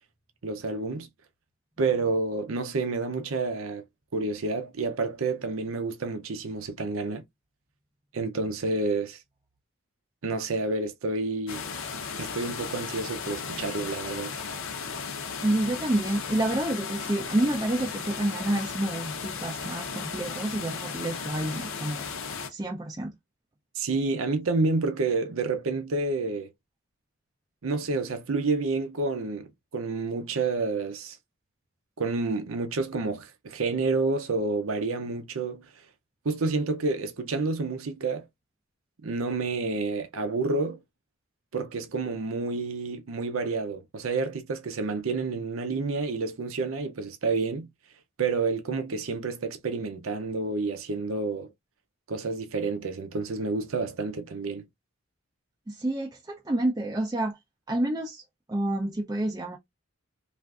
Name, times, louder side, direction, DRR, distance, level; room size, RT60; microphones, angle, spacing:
voice 1, 0.4-1.1 1.8-3.8 4.1-7.2 8.1-9.2 10.2-11.6 12.2-14.3 23.8-26.5 27.6-31.2 32.0-35.7 36.2-38.3 39.0-40.8 41.5-47.7 48.2-51.5 52.1-54.7, right 3 dB, 80° right, 0.6 m, -29 dB
sound 1, 11.5-22.5, left 5 dB, 75° left, 0.7 m, -35 dB
voice 2, 15.4-22.1 22.5-23.1 55.7-57.4 57.7-58.2 58.5-59.6, right 1 dB, 20° right, 0.4 m, -28 dB
3.3 x 2.5 x 2.3 m
head